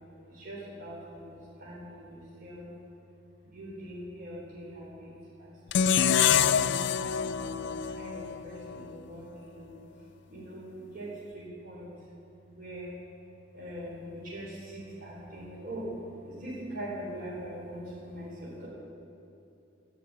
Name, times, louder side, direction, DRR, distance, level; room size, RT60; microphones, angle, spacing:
voice 1, 0.3-2.8 3.4-6.7 7.3-9.7 10.3-11.9 12.5-13.0 13.5-15.9 16.2-18.7, right 1 dB, 50° right, -6 dB, 4.2 m, -42 dB
sound 1, 5.7-8.9, left 8 dB, 65° left, 0.4 m, -26 dB
12.5 x 11.5 x 8.7 m, 2.7 s
head